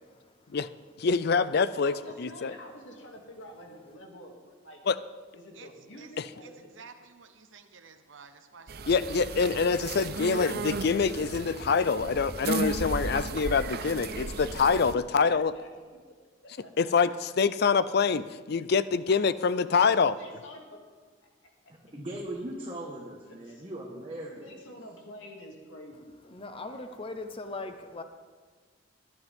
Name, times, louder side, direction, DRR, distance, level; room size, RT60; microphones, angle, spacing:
voice 1, 1.0-2.5 4.9-5.0 8.9-15.5 16.8-20.2, left 5 dB, 55° left, 15 dB, 0.5 m, -25 dB
voice 2, 1.7-4.8 5.3-6.9 10.9-11.2 15.2-15.7 16.1-16.2 16.4-17.1 19.4-19.8 20.1-20.8 23.3-23.6 24.3-26.9, left 1 dB, 85° left, 0 dB, 2.4 m, -49 dB
voice 3, 6.8-8.9, right 5 dB, 80° right, 7 dB, 0.9 m, -51 dB
sound 1, 8.7-14.9, right 3 dB, 55° right, 0.6 m, -35 dB
voice 4, 21.9-24.6, right 1 dB, 30° right, -2 dB, 1.5 m, -39 dB
voice 5, 26.2-28.0, left 2 dB, 30° left, 8 dB, 0.8 m, -39 dB
20.0 x 10.5 x 3.6 m, 1.5 s
head